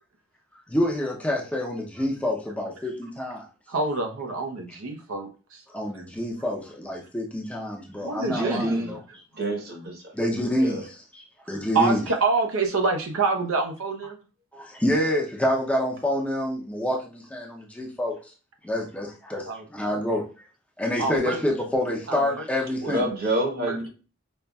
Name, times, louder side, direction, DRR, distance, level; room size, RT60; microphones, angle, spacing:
voice 1, 0.7-3.5 5.7-9.0 10.1-12.0 14.5-18.1 18.6-20.2 20.8-23.1, left 1 dB, 5° left, 0.5 m, -27 dB
voice 2, 3.7-5.6 5.9-6.0 8.0-9.0 11.5-14.2 19.5-19.9 21.0-21.4 22.1-22.4 23.6-23.8, right 3 dB, 85° right, 0.7 m, -27 dB
voice 3, 8.3-8.9 9.4-9.9 10.6-10.8 22.8-23.9, right 1 dB, 45° right, 1.0 m, -27 dB
5.3 x 2.4 x 2.2 m
head